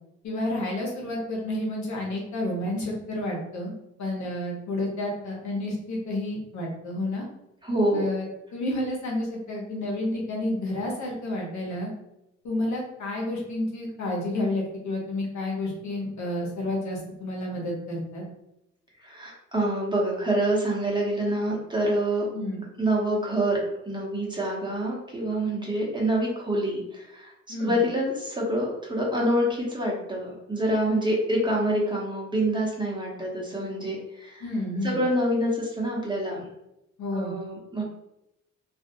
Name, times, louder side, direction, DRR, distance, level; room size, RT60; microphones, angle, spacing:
voice 1, 0.2-3.7 4.0-7.2 7.9-8.3 8.5-11.9 12.4-18.2 22.3-22.6 27.5-27.8 34.4-35.0 37.0-37.4, left 1 dB, 75° left, -2 dB, 0.9 m, -30 dB
voice 2, 7.6-8.1 19.0-22.3 22.5-34.5 34.8-36.5 37.1-37.8, right 1 dB, 15° right, -4 dB, 1.0 m, -26 dB
2.6 x 2.4 x 2.6 m, 0.86 s
cardioid pair, 75°, 29 cm